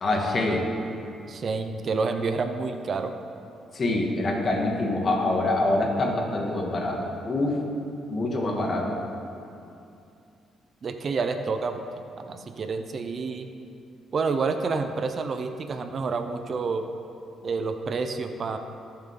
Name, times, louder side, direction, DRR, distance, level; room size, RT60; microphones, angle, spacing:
voice 1, 0.0-0.6 3.7-7.5 8.1-8.9, left 2 dB, 40° left, -1 dB, 2.2 m, -25 dB
voice 2, 1.3-3.1 10.8-11.8 12.2-13.5 14.1-16.9 17.4-18.6, right 4 dB, 45° right, 7 dB, 0.7 m, -28 dB
19.0 x 7.3 x 3.9 m, 2.6 s
cardioid pair, 90°, 0 cm